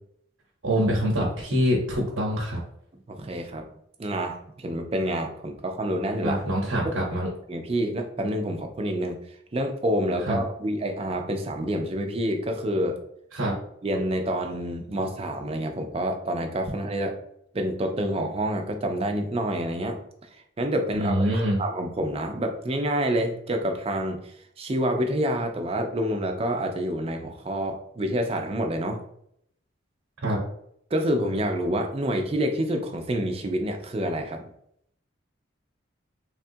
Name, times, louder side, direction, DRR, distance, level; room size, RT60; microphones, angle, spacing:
voice 1, 0.6-2.6 6.2-7.3 10.2-10.4 13.3-13.5 20.9-21.6 30.2-30.4, equal, 90° right, -3 dB, 0.9 m, -25 dB
voice 2, 3.1-3.7 4.0-6.4 7.5-9.2 9.5-13.0 13.5-13.6 13.8-17.1 17.5-20.0 20.6-21.3 21.6-24.2 24.6-29.0 30.9-34.5, right 1 dB, 30° right, 4 dB, 0.4 m, -27 dB
3.5 x 2.3 x 2.6 m, 0.70 s
head